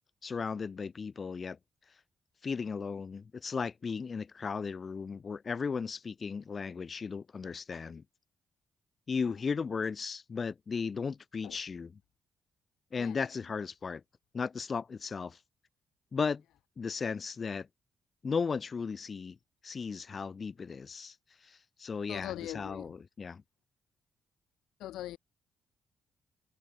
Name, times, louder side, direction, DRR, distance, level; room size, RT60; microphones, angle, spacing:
voice 1, 0.2-1.6 2.4-8.0 9.1-12.0 12.9-14.0 14.3-15.4 16.1-16.4 16.8-17.7 18.2-19.4 19.6-21.1 21.4-23.4, left 5 dB, 45° left, 2.0 m, -36 dB
voice 2, 22.1-22.9 24.8-25.2, left 14 dB, 75° left, 1.2 m, -40 dB
hypercardioid pair, 45°, 0 cm